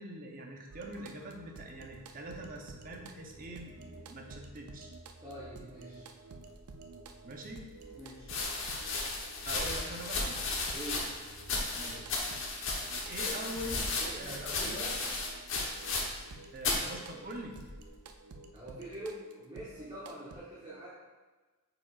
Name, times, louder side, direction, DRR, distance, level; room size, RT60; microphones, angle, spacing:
voice 1, 0.0-4.9 7.2-7.7 9.5-10.4 11.8-12.1 12.9-13.9 14.2-14.8 16.5-17.6, right 1 dB, 40° right, 1 dB, 0.8 m, -43 dB
sound 1, 0.7-20.4, right 3 dB, 85° right, 0.6 m, -51 dB
voice 2, 5.2-6.1 8.0-8.4 10.7-11.1 14.0-15.0 18.5-20.9, right 1 dB, 20° right, -9 dB, 1.2 m, -44 dB
sound 2, 7.2-7.3 8.2-16.3 16.6-16.9 17.7-18.1, left 3 dB, 55° left, 1.1 m, -35 dB
8.6 x 5.0 x 2.5 m, 1.3 s
head